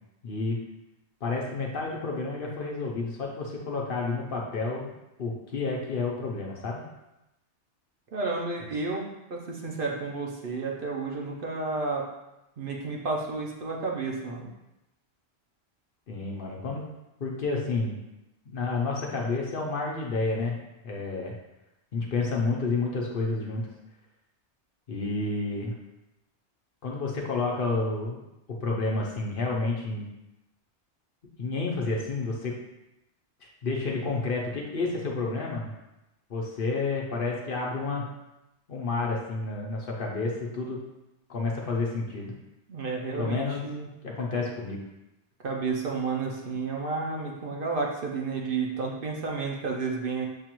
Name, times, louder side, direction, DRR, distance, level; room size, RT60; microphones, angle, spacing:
voice 1, 0.2-0.6 1.2-4.9 5.2-6.8 16.1-16.9 17.2-18.0 18.5-20.6 20.8-21.3 21.9-23.7 24.9-25.7 26.8-28.2 28.5-30.1 31.4-32.6 33.6-35.7 36.3-38.1 38.7-40.8 41.3-42.3 43.1-43.7 44.0-44.8, left 3 dB, 55° left, -1 dB, 0.8 m, -30 dB
voice 2, 8.1-12.0 12.6-14.5 42.7-43.9 45.4-50.2, right 4 dB, 55° right, -1 dB, 0.8 m, -31 dB
6.7 x 2.4 x 3.0 m, 0.92 s
omnidirectional pair, 1.2 m